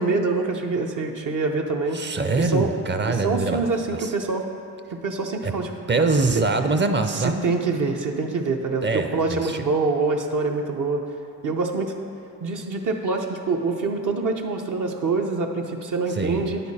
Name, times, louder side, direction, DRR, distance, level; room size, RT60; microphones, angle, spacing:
voice 1, 0.0-2.0 2.4-2.7 3.1-4.4 5.0-5.7 6.0-6.1 7.1-11.0 11.4-11.9 12.4-16.6, right 3 dB, 60° right, 2 dB, 0.8 m, -25 dB
voice 2, 1.9-3.7 4.0-4.1 5.4-5.5 5.9-7.4 8.8-9.6 16.1-16.5, right 3 dB, 30° right, 7 dB, 0.6 m, -23 dB
9.6 x 6.9 x 4.2 m, 2.6 s
cardioid pair, 80°, 36 cm